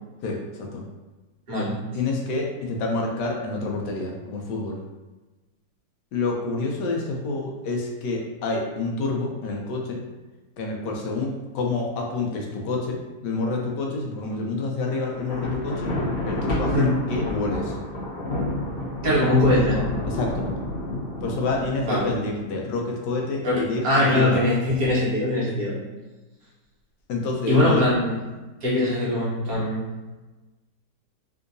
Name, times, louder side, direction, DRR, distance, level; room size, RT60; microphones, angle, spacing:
voice 1, 0.2-0.9 1.9-4.8 6.1-10.0 10.6-16.0 16.2-17.8 20.1-20.5 21.2-24.4 27.1-27.8, left 3 dB, 85° left, 0 dB, 1.3 m, -28 dB
Thunder, 15.1-22.4, left 1 dB, 50° left, 0.8 m, -29 dB
voice 2, 19.0-19.9 21.9-22.1 23.4-25.8 27.5-28.2 28.6-29.8, left 1 dB, 60° right, -7 dB, 1.4 m, -21 dB
3.7 x 2.7 x 2.5 m, 1.2 s
omnidirectional pair, 1.8 m